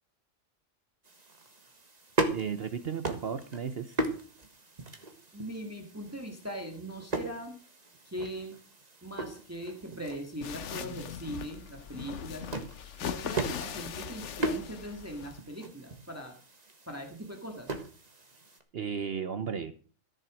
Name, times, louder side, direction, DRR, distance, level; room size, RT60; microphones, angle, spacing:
sound 1, 1.0-18.6, right 2 dB, 35° right, 1.6 m, -38 dB
voice 1, 2.3-4.0 18.7-19.7, right 7 dB, 55° right, 11 dB, 1.0 m, -34 dB
voice 2, 5.3-7.6 8.0-8.6 9.0-12.5 13.0-16.3 16.9-17.7, right 1 dB, 10° right, 3 dB, 1.9 m, -40 dB
sound 2, 10.4-15.4, left 8 dB, 70° left, 1.1 m, -40 dB
14.0 x 7.6 x 6.3 m, 0.40 s
omnidirectional pair, 1.3 m